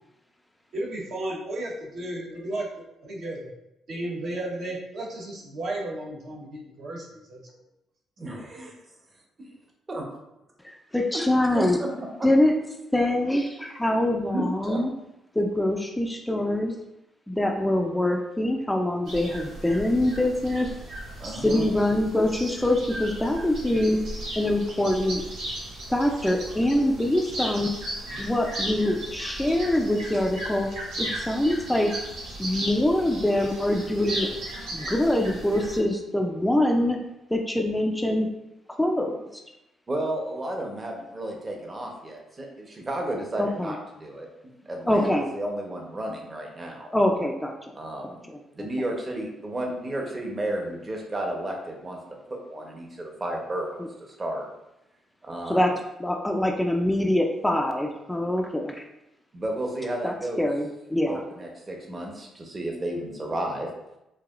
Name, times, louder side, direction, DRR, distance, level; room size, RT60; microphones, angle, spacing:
voice 1, 0.7-2.7 3.0-3.5 3.9-7.4, right 1 dB, 65° right, -4 dB, 1.1 m, -33 dB
voice 2, 8.2-8.7 9.9-10.0 11.1-11.2 11.5-11.9 12.2-12.3 14.3-14.8 21.2-21.6 28.1-28.2 39.9-44.3 44.6-46.9 47.8-48.2 48.5-52.0 52.3-54.5 55.2-55.6 59.3-60.5 61.1-63.7, right 1 dB, 30° right, 1 dB, 0.8 m, -32 dB
voice 3, 10.9-11.8 12.2-12.5 12.9-14.9 15.4-16.7 17.3-20.7 21.4-24.0 24.4-25.2 25.9-27.7 28.2-30.7 31.0-31.9 32.4-34.3 34.7-37.0 37.3-38.3 38.8-39.4 43.4-43.7 44.9-45.3 46.9-47.7 48.3-48.4 55.5-55.7 56.0-58.8 60.0-61.2, left 1 dB, 10° left, 2 dB, 0.4 m, -24 dB
sound 1, 19.1-35.8, right 1 dB, 85° right, 1.3 m, -36 dB
4.7 x 2.7 x 2.4 m, 0.90 s
cardioid pair, 90°, 0 cm